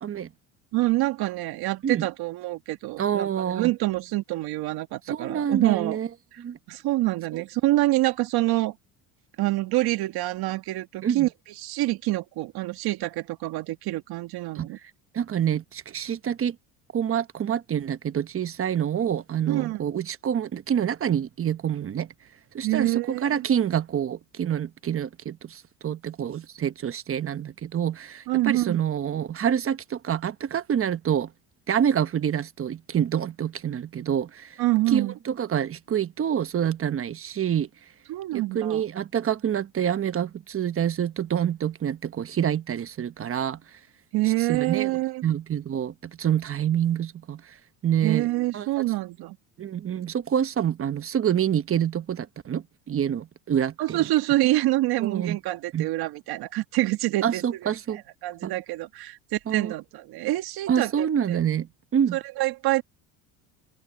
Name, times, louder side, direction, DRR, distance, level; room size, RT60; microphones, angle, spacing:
voice 1, 0.7-6.0 6.3-6.4 6.7-8.8 9.4-11.3 11.6-14.8 19.5-19.8 22.6-23.5 28.3-28.8 34.6-35.2 38.1-38.8 44.1-45.2 48.0-49.4 53.8-57.4 58.2-61.4 62.1-62.8, right 17 dB, 65° right, 1.8 m, -26 dB
voice 2, 3.0-3.7 5.1-6.1 6.4-6.6 11.0-11.3 14.5-14.7 15.1-16.5 16.9-22.1 22.5-31.3 31.7-34.6 34.9-37.7 38.3-43.6 44.5-44.9 45.2-47.6 47.8-48.3 48.5-48.7 49.6-54.1 55.0-55.4 55.7-55.9 57.2-58.0 58.4-58.5 59.5-59.7 60.7-62.2, right 9 dB, 35° right, 1.1 m, -27 dB
open air
cardioid pair, 110°, 40 cm